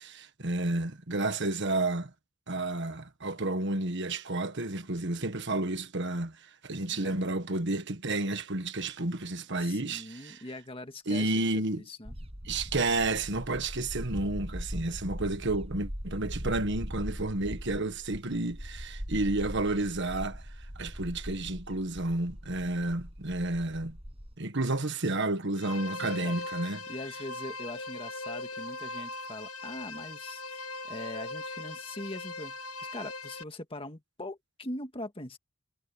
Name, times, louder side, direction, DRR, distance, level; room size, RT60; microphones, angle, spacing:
voice 1, 0.0-2.1 2.5-6.4 6.6-10.4 11.1-11.8 12.4-20.4 20.7-24.0 24.4-26.8, right 2 dB, 55° right, 1.6 m, -31 dB
voice 2, 6.9-7.3 9.6-12.2 26.0-26.4 26.9-35.4, left 1 dB, 25° left, 1.8 m, -42 dB
sound 1, 12.1-24.3, equal, 30° right, 7.3 m, -40 dB
sound 2, 25.6-33.4, left 2 dB, 85° left, 1.5 m, -39 dB
head